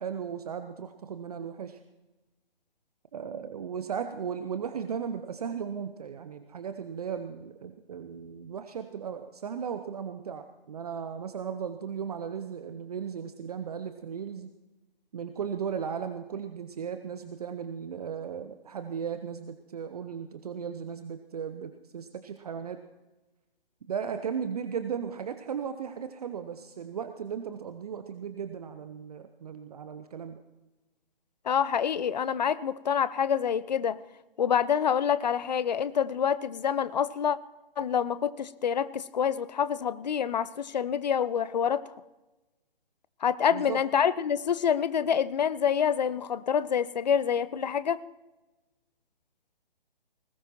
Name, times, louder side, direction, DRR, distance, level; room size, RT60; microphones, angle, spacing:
voice 1, 0.0-1.8 3.1-14.5 15.1-22.8 23.9-30.4 43.5-43.8, right 7 dB, 40° right, 9 dB, 0.8 m, -36 dB
voice 2, 31.4-34.0 34.4-37.4 37.8-41.9 43.2-48.0, left 8 dB, 45° left, 17 dB, 0.6 m, -27 dB
20.0 x 18.0 x 3.0 m, 1.1 s
figure-of-eight pair, 135°, 29 cm